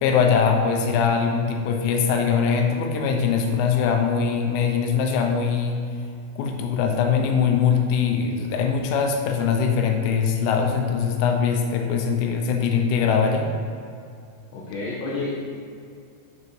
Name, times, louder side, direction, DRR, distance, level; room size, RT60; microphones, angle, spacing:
voice 1, 0.0-5.8 6.4-13.5, left 6 dB, 90° left, 3 dB, 3.3 m, -22 dB
voice 2, 14.5-15.4, left 3 dB, 70° left, -6 dB, 2.9 m, -29 dB
7.6 x 6.8 x 3.2 m, 2.4 s
omnidirectional pair, 5.6 m